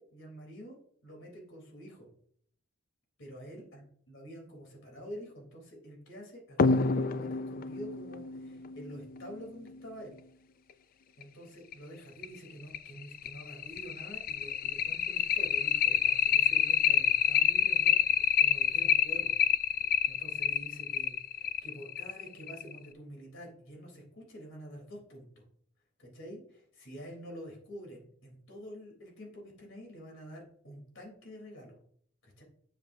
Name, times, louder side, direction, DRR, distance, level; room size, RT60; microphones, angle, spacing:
voice 1, 0.0-2.1 3.2-10.2 11.2-19.3 20.1-25.4 26.0-31.8 32.2-32.4, equal, 65° left, 0 dB, 3.4 m, -48 dB
sound 1, 6.6-9.7 11.2-11.3 11.7-11.8 12.2-12.3 12.7-22.8, left 8 dB, 45° left, 0.3 m, -28 dB
9.6 x 6.8 x 2.7 m, 0.62 s
head